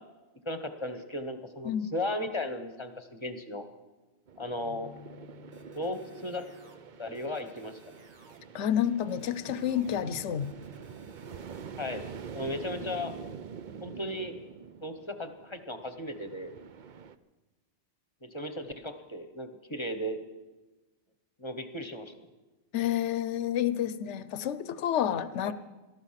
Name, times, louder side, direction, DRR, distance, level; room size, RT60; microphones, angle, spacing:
voice 1, 0.4-3.7 4.4-4.9 5.7-6.4 7.0-8.0 11.8-12.0 12.3-13.1 13.8-14.3 14.8-16.5 18.2-20.2 21.4-22.1 25.4-25.5, left 1 dB, 25° left, 8 dB, 1.0 m, -36 dB
sound 1, 4.3-17.2, right 7 dB, 50° right, 0.7 m, -46 dB
sound 2, 4.5-8.0, left 8 dB, 25° right, 5.4 m, -55 dB
sound 3, 5.5-6.8 7.1-8.4 8.8-10.0 10.4-11.6, right 3 dB, 70° right, 2.0 m, -56 dB
voice 2, 8.5-10.5 22.7-25.5, left 10 dB, 75° left, 15 dB, 1.0 m, -29 dB
18.5 x 13.5 x 5.8 m, 1.2 s
omnidirectional pair, 1.2 m